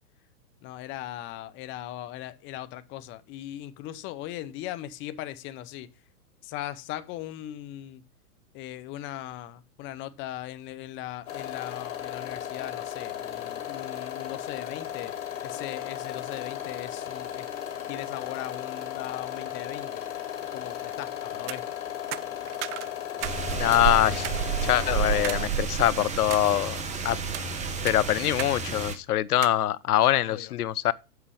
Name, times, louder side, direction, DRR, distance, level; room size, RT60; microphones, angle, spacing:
voice 1, 0.6-5.9 6.4-8.0 8.5-15.1 15.4-17.5 17.9-20.0 20.5-21.6 30.2-30.5, left 13 dB, 25° left, 0.8 m, -39 dB
sound 1, 11.3-25.5, left 10 dB, 55° left, 2.7 m, -36 dB
sound 2, 21.3-21.6 22.1-23.4 23.7-23.8 24.2-24.4 25.2-25.4 25.9-26.5 27.1-27.5 27.9-28.6 28.8-28.9 29.4-29.6, right 14 dB, 55° right, 0.5 m, -36 dB
sound 3, 23.2-28.9, right 6 dB, 15° right, 1.2 m, -30 dB
voice 2, 23.5-24.3 24.6-26.8 27.0-27.2 27.8-30.9, left 13 dB, 80° left, 0.6 m, -24 dB
7.8 x 5.6 x 6.9 m
hypercardioid pair, 125°, 45 cm